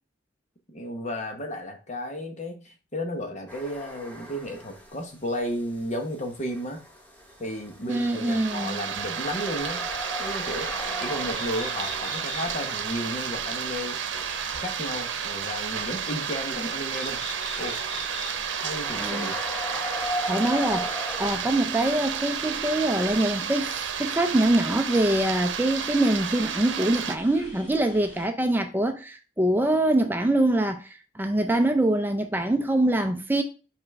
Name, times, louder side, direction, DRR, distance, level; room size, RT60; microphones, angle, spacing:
voice 1, 0.7-6.8 7.4-9.9 10.2-10.7 11.0-14.0 14.6-17.2 17.6-17.8 18.6-19.4, equal, 40° left, 1.1 m, -33 dB
sound 1, 3.5-5.0 5.3-21.4, equal, 10° left, 1.0 m, -38 dB
voice 2, 7.9-8.8 19.0-19.3 20.3-20.9 21.2-30.9 31.1-33.4, right 1 dB, 10° right, 0.4 m, -24 dB
sound 2, 7.9-27.2, right 7 dB, 90° right, 0.7 m, -32 dB
sound 3, 10.4-28.3, equal, 65° left, 2.7 m, -44 dB
5.4 x 4.9 x 3.5 m
head